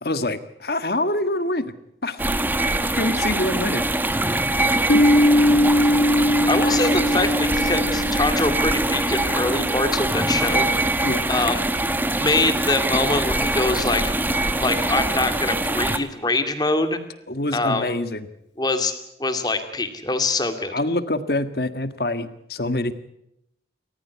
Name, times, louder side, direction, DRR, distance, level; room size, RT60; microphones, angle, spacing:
voice 1, 0.0-1.7 2.0-2.3 2.9-3.8 4.9-5.0 11.0-11.2 17.3-18.3 20.7-22.9, left 2 dB, 60° left, 11 dB, 1.6 m, -25 dB
sound 1, 2.2-16.0, right 1 dB, 10° right, 1.2 m, -23 dB
Piano, 4.9-10.3, left 1 dB, 85° left, 1.3 m, -21 dB
voice 2, 6.5-10.8 11.3-11.6 12.2-14.1 14.6-17.0 17.5-17.9 18.6-18.9 19.2-20.7, left 2 dB, 25° left, 8 dB, 2.3 m, -24 dB
29.0 x 14.5 x 8.3 m, 0.80 s
head